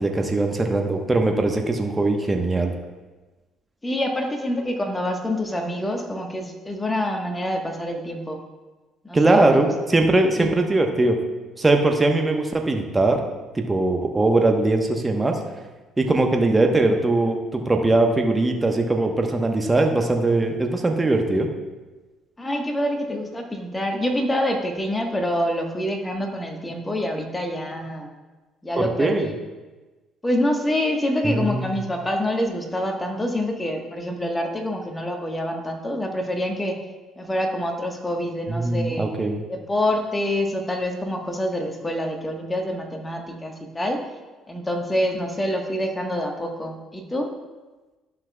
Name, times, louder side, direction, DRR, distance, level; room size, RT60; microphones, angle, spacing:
voice 1, 0.0-2.7 9.1-11.2 11.6-13.2 13.5-15.4 16.0-21.5 28.8-29.3 31.2-31.8 38.5-39.4, right 2 dB, 20° right, 3 dB, 1.1 m, -21 dB
voice 2, 3.8-8.4 9.0-9.9 10.3-10.5 22.4-28.1 28.6-29.3 30.2-36.8 37.2-39.1 39.5-44.0 44.5-47.3, left 1 dB, 20° left, 3 dB, 1.3 m, -26 dB
11.5 x 5.9 x 2.3 m, 1.2 s
hypercardioid pair, 50°, 0 cm